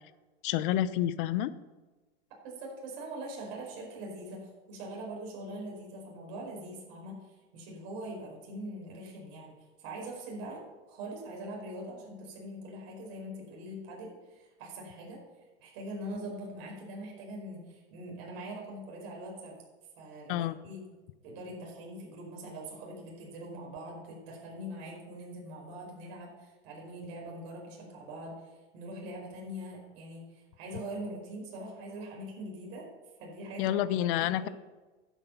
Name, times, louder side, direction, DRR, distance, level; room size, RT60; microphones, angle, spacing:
voice 1, 0.4-1.5 20.3-20.6 33.6-34.5, left 12 dB, 60° left, 15 dB, 0.8 m, -29 dB
voice 2, 2.4-7.2 7.5-15.2 15.6-19.6 20.0-20.8 21.2-32.9 33.2-33.8 34.2-34.5, right 1 dB, 55° right, -1 dB, 4.8 m, -42 dB
12.0 x 8.2 x 5.9 m, 1.2 s
supercardioid pair, 135°, 30 cm